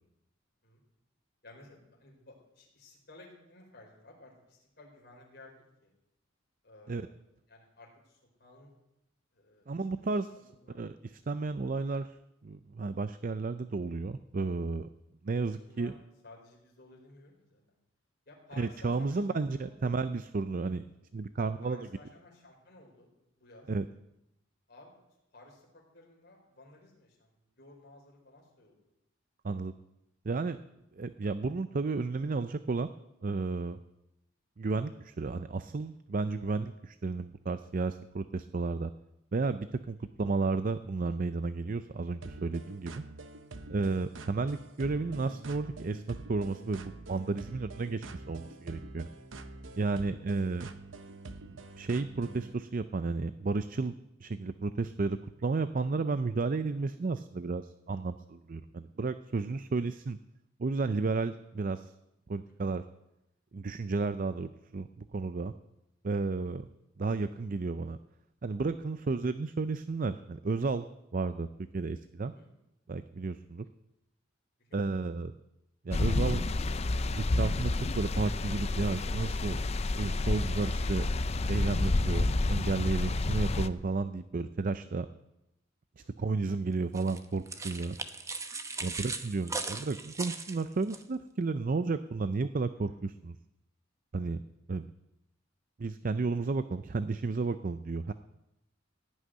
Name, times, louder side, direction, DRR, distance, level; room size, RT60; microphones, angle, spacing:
voice 1, 1.4-5.9 6.6-7.1 7.5-8.7 9.3-9.7 9.9-10.8 15.5-16.0 16.2-17.8 18.3-19.7 21.4-23.1 23.4-23.7 24.7-25.0 25.3-28.8 36.3-36.6 39.8-40.1 49.3-49.7 50.2-50.3 50.6-50.8 56.7-56.9 59.5-59.6 62.5-62.8 66.2-66.5 69.0-69.3 72.2-72.5 74.6-75.0 86.0-86.3 88.7-89.0 92.8-93.0, left 2 dB, 55° left, -1 dB, 4.7 m, -56 dB
voice 2, 9.7-10.3 10.7-12.1 12.4-14.9 15.2-15.9 18.6-20.8 21.1-21.9 23.7-23.8 29.4-29.7 30.2-30.6 30.9-32.9 33.2-33.8 34.6-38.9 39.3-43.0 43.7-49.1 49.7-50.7 51.5-53.9 54.2-60.2 60.6-61.9 62.3-62.8 63.5-65.5 66.0-66.6 67.0-68.0 68.4-70.9 71.1-71.5 71.7-72.3 72.9-73.7 74.7-75.3 75.8-76.6 77.1-79.6 80.0-81.1 81.5-85.1 86.2-88.0 88.8-93.3 94.1-94.4 94.7-94.9 95.8-98.1, right 3 dB, 45° right, 11 dB, 0.5 m, -32 dB
sound 1, 42.2-52.5, right 2 dB, 75° right, 0.9 m, -46 dB
sound 2, 75.9-83.7, left 2 dB, 30° left, 0.5 m, -29 dB
sound 3, 86.9-91.0, right 3 dB, 15° right, 0.8 m, -38 dB
16.5 x 6.5 x 9.5 m, 0.88 s
head